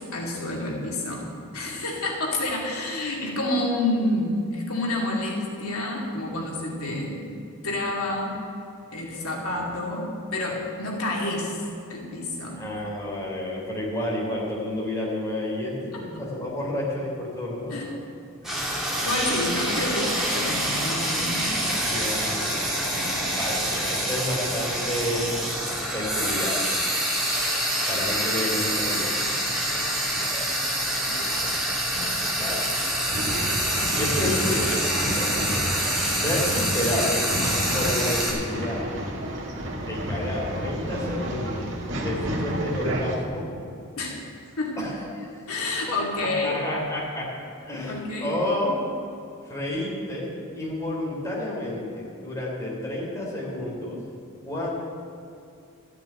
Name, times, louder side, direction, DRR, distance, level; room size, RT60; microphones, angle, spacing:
voice 1, 0.1-7.2 7.6-8.4 8.9-11.6 11.9-12.7 15.9-16.0 17.7-17.9 19.0-21.5 22.8-23.3 31.1-31.3 44.0-44.2 44.6-44.9 45.5-46.6 47.9-48.4, left 2 dB, 75° left, -2 dB, 2.5 m, -29 dB
voice 2, 12.6-18.1 18.4-18.6 18.9-19.1 21.4-21.5 21.9-22.6 23.4-25.5 25.9-26.6 27.9-29.4 30.2-30.5 31.9-32.6 33.9-35.3 36.0-37.2 37.7-38.8 39.8-41.7 42.0-43.5 44.8-45.4 45.9-47.3 47.6-48.8 49.5-54.0 54.4-54.7, left 1 dB, 15° left, -5 dB, 3.3 m, -30 dB
Frying (food), 18.4-38.3, right 1 dB, ahead, 2.6 m, -26 dB
Male speech man speaking / Chatter / Rattle, 33.1-43.2, equal, 55° right, 1.9 m, -31 dB
13.5 x 6.7 x 9.6 m, 2.5 s
head